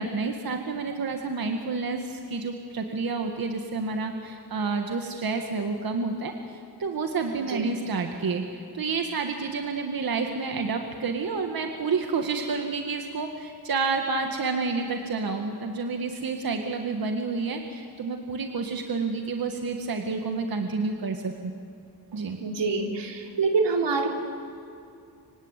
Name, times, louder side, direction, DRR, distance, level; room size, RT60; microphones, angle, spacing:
voice 1, 0.0-6.3 6.8-8.4 8.7-21.5 22.1-22.4, right 4 dB, 55° right, 4 dB, 1.9 m, -29 dB
voice 2, 22.4-24.1, right 4 dB, 85° right, 1 dB, 4.0 m, -26 dB
26.0 x 25.0 x 9.1 m, 2.5 s
wide cardioid pair, 115°, 41 cm